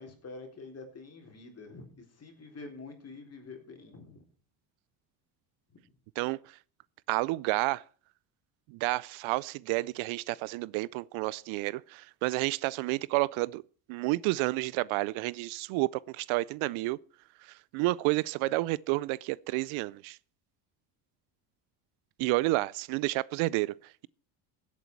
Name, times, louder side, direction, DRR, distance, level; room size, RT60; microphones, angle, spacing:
voice 1, 0.0-4.2 5.7-5.8, left 3 dB, 30° left, 3.8 m, -47 dB
voice 2, 7.1-7.8 8.7-13.6 13.9-17.0 17.4-20.2 22.2-23.7, right 21 dB, 75° right, 0.6 m, -30 dB
16.0 x 8.4 x 4.6 m
cardioid pair, 120°, 49 cm